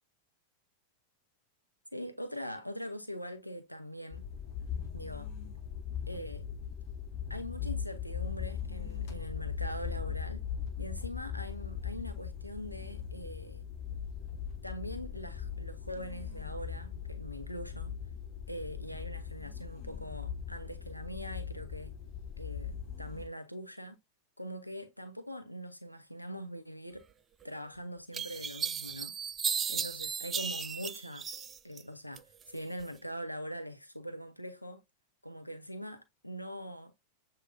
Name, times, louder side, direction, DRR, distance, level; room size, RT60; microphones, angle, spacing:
voice 1, 1.9-4.2 4.9-5.3 6.1-6.5 7.3-10.4 10.8-13.6 14.6-18.0 18.5-21.9 22.4-24.0 24.4-27.1 27.4-29.1 29.7-31.3 31.6-34.8 35.2-36.9, equal, 90° left, 0.4 m, -42 dB
sound 1, 4.1-23.3, left 8 dB, 45° left, 1.2 m, -39 dB
sound 2, 27.4-27.5 28.1-31.8 32.2-32.9, right 7 dB, 25° right, 0.4 m, -35 dB
7.3 x 2.6 x 2.6 m
figure-of-eight pair, 90°, 0 cm